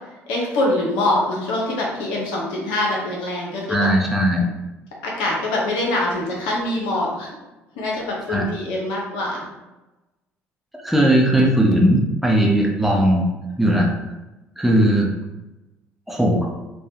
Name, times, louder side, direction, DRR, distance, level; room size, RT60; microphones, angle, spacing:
voice 1, 0.3-3.9 5.0-7.3 7.8-9.5, left 1 dB, 75° left, -2 dB, 0.7 m, -24 dB
voice 2, 3.7-4.5 8.3-8.5 10.8-13.2 13.6-13.9 14.6-15.1 16.1-16.5, right 1 dB, 5° right, -2 dB, 0.7 m, -18 dB
3.3 x 2.2 x 2.8 m, 1.0 s
hypercardioid pair, 55°, 7 cm